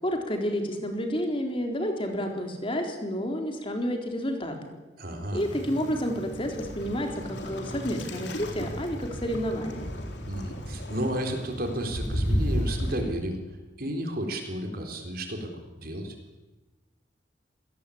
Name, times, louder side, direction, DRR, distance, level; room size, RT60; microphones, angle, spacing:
voice 1, 0.0-4.5 5.3-9.9, equal, 30° left, 3 dB, 3.8 m, -30 dB
voice 2, 5.0-5.4 10.3-13.4 13.8-16.1, right 1 dB, 55° right, 4 dB, 4.1 m, -32 dB
Waves surf, 5.4-13.0, equal, 65° left, 3.9 m, -33 dB
26.0 x 18.0 x 8.7 m, 1.1 s
head